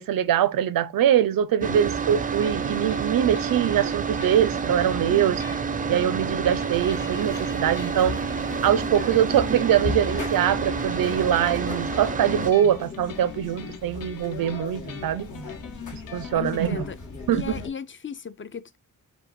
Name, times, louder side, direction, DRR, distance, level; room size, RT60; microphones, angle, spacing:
voice 1, 0.0-5.4 5.9-8.2 8.6-15.3 15.9-16.8 17.3-17.5, right 10 dB, 90° right, 0.5 m, -23 dB
sound 1, 1.6-12.5, right 5 dB, 25° right, 0.4 m, -29 dB
sound 2, 2.5-16.7, left 8 dB, 80° left, 0.7 m, -42 dB
sound 3, 6.7-17.7, left 3 dB, 60° left, 1.5 m, -38 dB
voice 2, 16.3-17.0 17.3-18.8, left 7 dB, 35° left, 0.5 m, -35 dB
5.1 x 2.1 x 4.6 m
wide cardioid pair, 105°, 33 cm